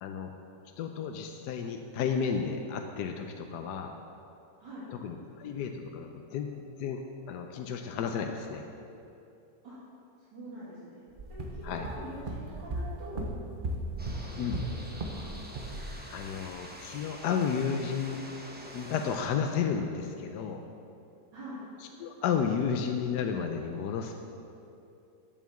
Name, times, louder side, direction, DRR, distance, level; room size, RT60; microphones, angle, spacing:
voice 1, 0.0-0.3 0.8-3.9 4.9-8.6 11.6-11.9 14.4-14.6 16.1-18.2 18.7-20.6 22.0-24.1, left 6 dB, 75° left, 4 dB, 1.1 m, -32 dB
voice 2, 10.3-13.3 14.0-15.3 21.3-21.6, right 1 dB, 80° right, -14 dB, 3.6 m, -45 dB
sound 1, 11.2-15.3 15.5-15.8, right 1 dB, 40° right, 0.7 m, -36 dB
sound 2, 14.0-19.3, right 1 dB, 10° right, 0.6 m, -46 dB
8.1 x 7.2 x 7.0 m, 2.6 s
omnidirectional pair, 1.9 m